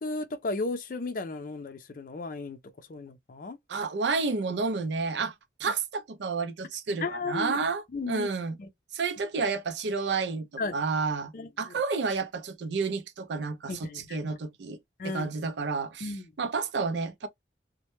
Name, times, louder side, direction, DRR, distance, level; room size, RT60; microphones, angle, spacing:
voice 1, 0.0-2.6 2.9-3.6 7.0-7.6 7.9-8.3 8.6-8.7 10.6-10.8 11.3-11.7 13.7-14.4 15.0-15.3 16.0-16.3, left 3 dB, 50° left, 0.4 m, -34 dB
voice 2, 3.7-5.3 5.6-8.5 8.9-11.3 11.6-14.8 15.0-17.3, right 4 dB, 85° right, 0.5 m, -30 dB
2.1 x 2.1 x 2.9 m
head